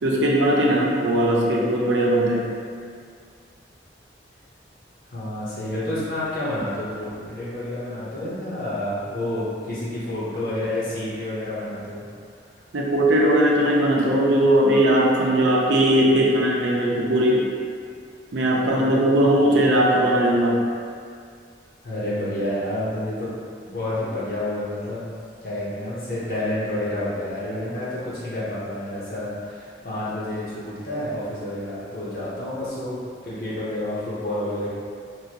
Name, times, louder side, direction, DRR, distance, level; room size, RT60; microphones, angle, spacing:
voice 1, 0.0-2.5 12.7-17.5 18.3-20.6, right 1 dB, 80° right, -3 dB, 0.5 m, -19 dB
voice 2, 5.1-12.0 21.8-23.3 23.6-25.1 25.4-33.0 33.2-34.7, left 1 dB, 50° left, -9 dB, 0.8 m, -29 dB
3.0 x 2.6 x 2.9 m, 2.1 s
head